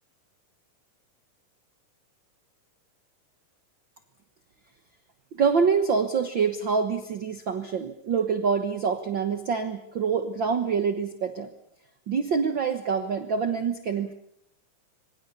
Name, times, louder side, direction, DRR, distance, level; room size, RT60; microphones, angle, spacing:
voice 1, 5.3-11.5 12.1-14.1, right 6 dB, 55° right, 8 dB, 1.3 m, -26 dB
27.0 x 23.0 x 6.9 m, 0.75 s
omnidirectional pair, 3.8 m